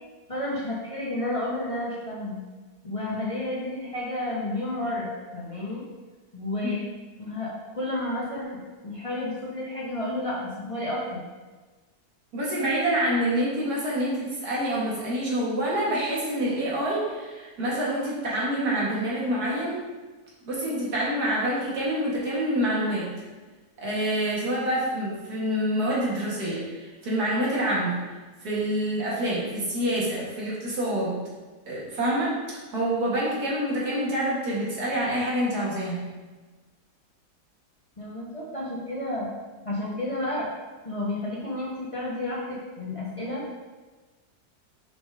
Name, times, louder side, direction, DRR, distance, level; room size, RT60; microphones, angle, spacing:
voice 1, 0.3-2.4 2.8-5.8 6.3-6.8 7.2-11.2 38.0-39.3 39.6-40.5 40.8-43.4, left 1 dB, 20° left, -6 dB, 1.2 m, -31 dB
voice 2, 12.3-19.8 20.5-23.1 23.8-28.0 28.4-31.2 31.7-32.4 32.7-36.1, right 1 dB, 75° right, -6 dB, 2.5 m, -27 dB
7.0 x 5.2 x 3.7 m, 1.3 s
omnidirectional pair, 1.7 m